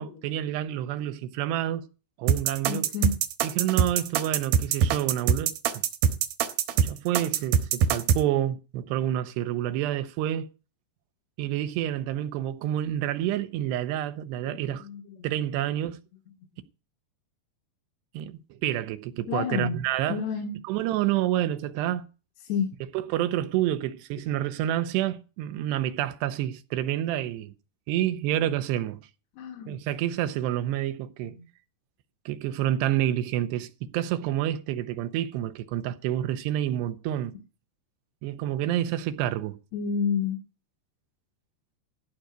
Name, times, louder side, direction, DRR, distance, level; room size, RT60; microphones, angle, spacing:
voice 1, 0.0-1.9 2.2-2.9 3.4-5.8 6.8-10.5 11.4-14.9 15.2-16.0 18.1-20.2 20.6-22.1 22.9-27.5 27.9-29.0 29.7-31.4 32.3-37.3 38.2-39.6, right 12 dB, 90° right, 3.1 m, -28 dB
sound 1, 2.3-8.2, right 7 dB, 70° right, 2.8 m, -23 dB
voice 2, 2.7-3.1 14.5-15.0 15.4-15.5 19.3-19.8 20.1-20.5 22.4-22.7 29.4-29.8 31.2-31.3 39.7-40.4, left 6 dB, 85° left, 3.7 m, -29 dB
14.5 x 5.1 x 8.0 m
omnidirectional pair, 4.7 m